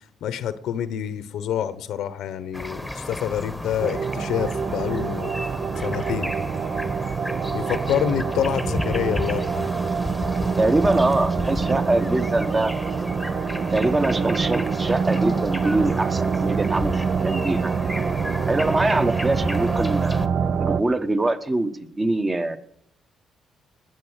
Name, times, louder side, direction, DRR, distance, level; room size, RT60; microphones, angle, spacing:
voice 1, 0.2-5.3 5.8-6.3 7.5-9.7, left 9 dB, 80° left, 13 dB, 1.0 m, -27 dB
sound 1, 2.5-20.3, left 1 dB, 5° left, 1.2 m, -33 dB
sound 2, 3.8-20.8, right 5 dB, 55° right, 0.6 m, -26 dB
voice 2, 10.6-12.7 13.7-18.2 18.5-20.2 20.6-22.6, right 2 dB, 25° right, 9 dB, 1.2 m, -23 dB
20.5 x 8.1 x 6.5 m, 0.72 s
cardioid pair, 90°, 0 cm